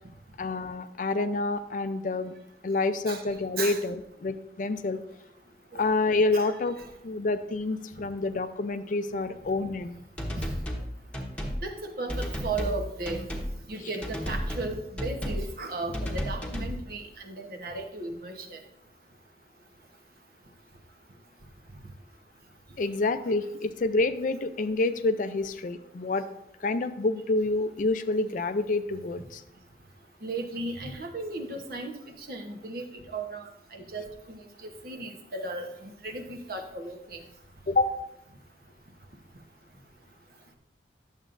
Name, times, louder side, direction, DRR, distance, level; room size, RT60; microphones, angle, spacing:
voice 1, 0.4-2.3 2.6-5.0 5.7-6.8 7.0-10.0 22.8-26.3 26.6-29.4 37.7-38.0, left 3 dB, 45° left, 11 dB, 0.4 m, -28 dB
sound 1, 10.2-10.9 11.1-11.6 12.1-12.8 13.1-13.5 14.0-14.7 15.0-15.5 15.9-16.8, equal, 5° left, 1.1 m, -32 dB
voice 2, 11.6-13.3 13.7-18.6 30.2-31.9 32.2-37.2, right 2 dB, 55° right, 3 dB, 1.0 m, -36 dB
11.0 x 7.2 x 2.6 m, 0.81 s
head